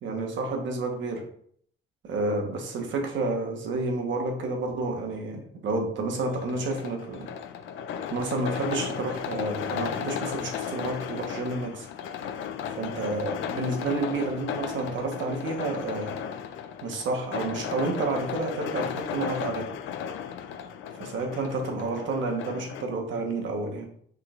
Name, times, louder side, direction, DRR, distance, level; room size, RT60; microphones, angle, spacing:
voice 1, 0.0-1.2 2.0-7.3 8.1-11.9 12.7-16.3 16.8-19.7 21.1-23.9, right 2 dB, 70° right, 2 dB, 1.1 m, -30 dB
sound 1, 6.2-22.8, left 8 dB, 80° left, 0.5 m, -35 dB
6.0 x 3.7 x 2.4 m, 0.64 s
cardioid pair, 90°, 20 cm